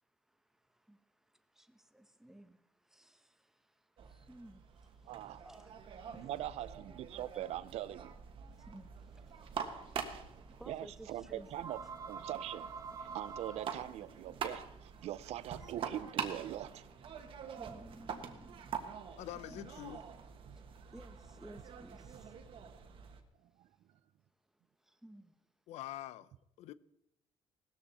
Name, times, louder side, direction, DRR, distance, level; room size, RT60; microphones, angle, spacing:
voice 1, 0.3-6.4 8.4-11.5 15.6-15.7 17.2-19.2 19.5-19.7 20.5-22.4 24.8-25.4, right 1 dB, 5° right, 1.1 m, -58 dB
sound 1, 4.0-23.2, right 7 dB, 50° right, 1.6 m, -46 dB
voice 2, 5.1-5.4 6.2-8.1 10.7-11.8 12.1-12.7 13.0-16.9 20.5-20.6 23.6-23.7, right 12 dB, 70° right, 0.6 m, -42 dB
sound 2, 9.1-15.1, right 5 dB, 30° right, 1.3 m, -48 dB
voice 3, 19.2-20.0 25.7-26.3 26.6-26.7, left 14 dB, 85° left, 0.6 m, -45 dB
18.0 x 13.5 x 4.3 m
cardioid pair, 140°, 11 cm